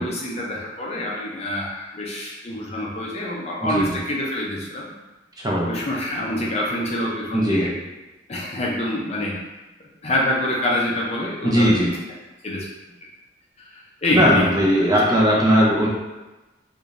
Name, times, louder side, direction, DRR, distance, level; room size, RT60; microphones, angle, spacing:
voice 1, 0.0-4.8 5.7-7.7 8.3-9.4 10.0-11.7 12.4-12.7 13.7-14.4 14.8-14.9, left 1 dB, 35° left, -3 dB, 0.5 m, -26 dB
voice 2, 5.4-5.7 7.3-7.7 11.4-11.9 14.1-15.9, equal, 20° right, -4 dB, 0.6 m, -18 dB
4.8 x 2.6 x 2.5 m, 1.1 s
head